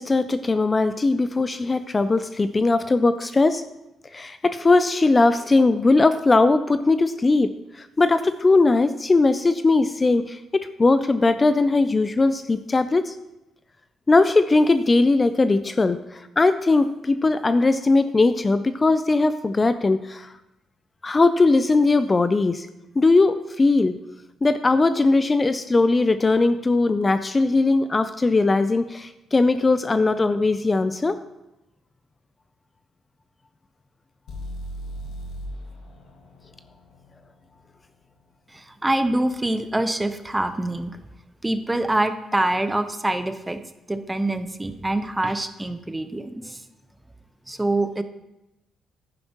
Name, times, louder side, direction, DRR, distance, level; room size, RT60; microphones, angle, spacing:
voice 1, 0.0-3.6 4.1-13.1 14.1-20.3 21.0-22.7 23.0-24.0 24.4-31.2, left 3 dB, 25° left, 11 dB, 0.4 m, -19 dB
sound 1, 34.3-38.2, equal, 85° left, 1.7 m, -38 dB
voice 2, 38.5-41.0 41.4-43.6 43.9-46.6 47.5-48.0, right 1 dB, 10° right, 10 dB, 0.7 m, -25 dB
10.5 x 9.9 x 3.0 m, 0.93 s
cardioid pair, 90°, 0 cm